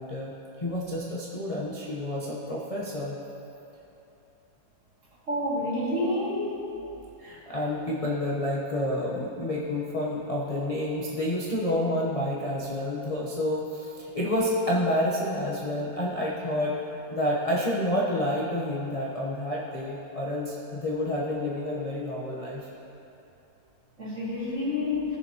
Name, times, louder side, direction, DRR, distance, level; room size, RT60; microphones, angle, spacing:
voice 1, 0.0-3.2 7.2-22.7, left 1 dB, 30° left, -6 dB, 0.7 m, -29 dB
voice 2, 5.3-6.5 24.0-25.0, left 1 dB, 40° right, -9 dB, 2.9 m, -28 dB
17.5 x 6.9 x 3.0 m, 2.8 s
omnidirectional pair, 2.0 m